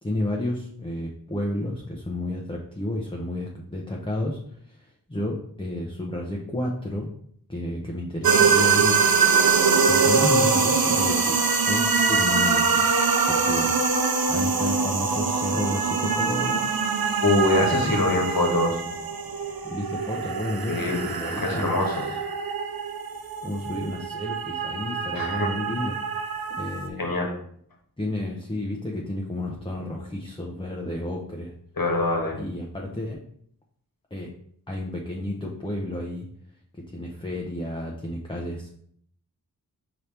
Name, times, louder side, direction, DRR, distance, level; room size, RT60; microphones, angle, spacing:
voice 1, 0.0-4.4 4.7-7.1 7.5-9.0 9.9-11.4 11.7-12.9 13.3-13.7 14.3-16.7 17.6-18.2 19.6-22.1 23.4-25.9 26.6-27.2 28.0-31.5 32.3-33.2 34.1-34.3 34.7-36.3 36.9-38.7, left 1 dB, 15° left, -1 dB, 0.7 m, -31 dB
sound 1, 8.2-26.9, right 5 dB, 75° right, 0.6 m, -23 dB
voice 2, 17.2-18.8 20.7-22.1 25.1-25.5 27.0-27.3 31.8-32.4, left 2 dB, 70° left, 0 dB, 1.2 m, -24 dB
5.4 x 3.0 x 3.3 m, 0.65 s
wide cardioid pair, 55°, 36 cm